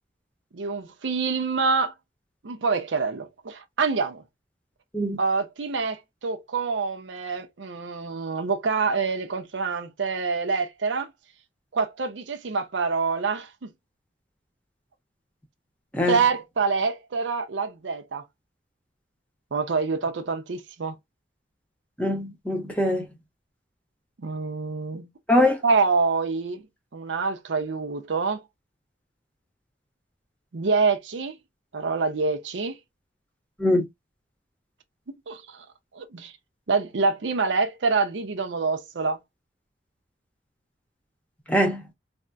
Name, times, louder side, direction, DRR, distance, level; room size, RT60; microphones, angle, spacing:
voice 1, 0.5-1.9 2.4-4.2 5.2-11.1 11.7-13.7 16.1-18.2 19.5-20.9 24.2-25.1 25.6-26.6 26.9-28.4 30.5-31.4 31.7-32.8 35.3-35.6 35.9-36.3 36.7-39.2, right 4 dB, 85° right, 0.6 m, -26 dB
voice 2, 15.9-16.2 22.0-23.1 25.3-25.6 33.6-33.8 41.5-41.8, left 1 dB, 10° left, 0.8 m, -22 dB
3.4 x 2.1 x 2.5 m
head